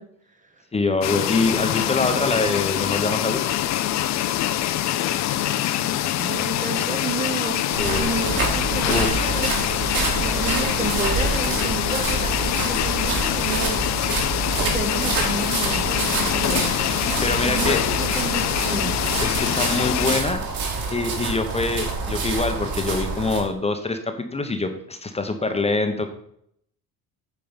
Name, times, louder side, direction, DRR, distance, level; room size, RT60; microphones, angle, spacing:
voice 1, 0.0-0.6 6.2-18.9, right 3 dB, 20° right, 6 dB, 0.6 m, -32 dB
voice 2, 0.7-3.4 7.8-8.1 8.9-9.5 17.1-17.8 19.2-20.4 20.9-26.1, left 3 dB, 15° left, 7 dB, 0.7 m, -24 dB
sound 1, 1.0-20.2, left 13 dB, 45° left, 0.5 m, -24 dB
sound 2, 7.7-23.4, right 4 dB, 60° right, 2.4 m, -27 dB
8.8 x 4.6 x 5.6 m, 0.71 s
cardioid pair, 145°, 39 cm